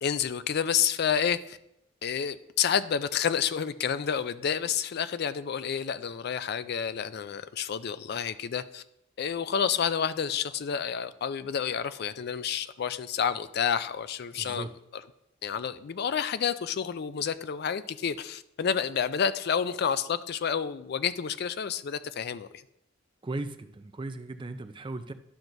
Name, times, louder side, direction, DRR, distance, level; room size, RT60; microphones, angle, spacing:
voice 1, 0.0-1.6 2.0-8.8 9.2-14.7 14.9-15.0 15.4-22.5, left 7 dB, 55° left, 14 dB, 0.4 m, -29 dB
voice 2, 14.3-14.7 23.2-25.1, right 2 dB, 25° right, 10 dB, 0.5 m, -37 dB
11.5 x 5.9 x 2.6 m, 0.80 s
head